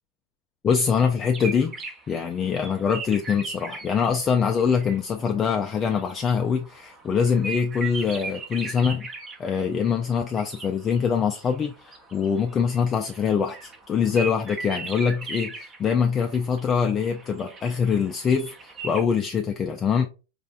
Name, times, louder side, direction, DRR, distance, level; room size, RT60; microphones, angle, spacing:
voice 1, 0.6-9.1 9.4-20.1, left 6 dB, 25° left, 0.3 m, -24 dB
sound 1, 1.3-4.0 4.3-19.0, right 3 dB, 25° right, 0.7 m, -39 dB
4.1 x 2.4 x 2.3 m
figure-of-eight pair, 90°, 0 cm